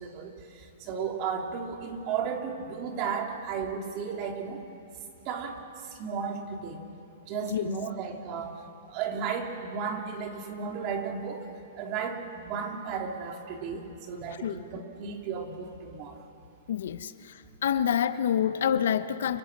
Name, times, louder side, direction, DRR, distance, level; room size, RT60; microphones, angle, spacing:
voice 1, 0.0-4.6 5.2-5.6 5.9-6.8 7.3-8.6 8.9-11.5 11.8-16.2, right 6 dB, 35° right, 3 dB, 3.1 m, -34 dB
voice 2, 16.7-17.1 17.6-19.4, left 9 dB, 70° left, 12 dB, 1.0 m, -26 dB
29.5 x 25.5 x 6.2 m, 2.7 s
hypercardioid pair, 140°, 0 cm